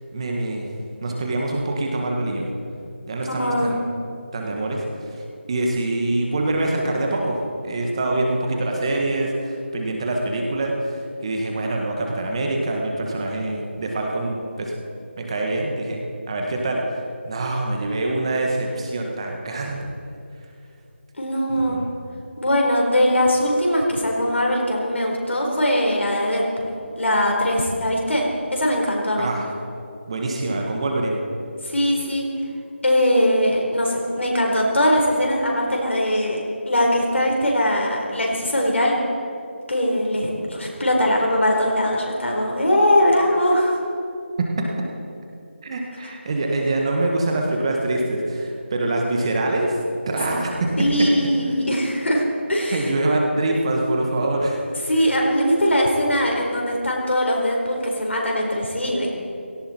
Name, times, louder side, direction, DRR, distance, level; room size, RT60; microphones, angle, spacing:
voice 1, 0.1-0.7 1.0-2.5 3.1-3.8 4.3-4.8 5.1-5.2 5.5-7.4 7.6-14.7 15.2-16.8 17.2-19.9 21.5-21.9 29.2-29.5 30.1-31.2 44.4-44.7 45.6-49.7 50.1-51.1 52.7-54.6, right 2 dB, 25° right, 1 dB, 1.6 m, -24 dB
voice 2, 3.2-3.8 21.2-21.8 22.4-29.3 31.6-32.3 32.8-39.0 39.7-43.7 50.8-52.2 52.5-52.9 54.9-59.1, equal, 70° left, -1 dB, 4.3 m, -21 dB
17.5 x 16.0 x 4.5 m, 2.6 s
figure-of-eight pair, 170°, 7 cm